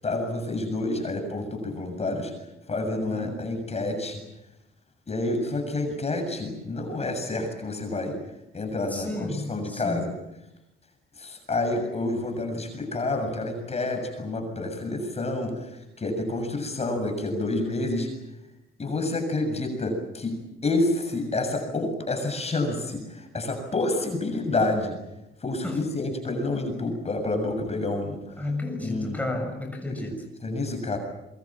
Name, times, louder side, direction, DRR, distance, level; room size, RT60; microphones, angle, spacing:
voice 1, 0.0-2.3 2.7-4.2 5.1-8.2 8.5-10.1 11.2-18.1 18.8-20.4 20.6-25.0 25.4-28.3 28.8-29.2 29.9-30.1 30.4-31.0, left 2 dB, 30° left, 5 dB, 7.2 m, -28 dB
voice 2, 3.1-3.5 8.9-10.1 25.6-25.8 28.4-30.3, left 2 dB, 5° left, 2 dB, 6.8 m, -32 dB
27.5 x 23.5 x 7.5 m, 0.92 s
cardioid pair, 90°, 20 cm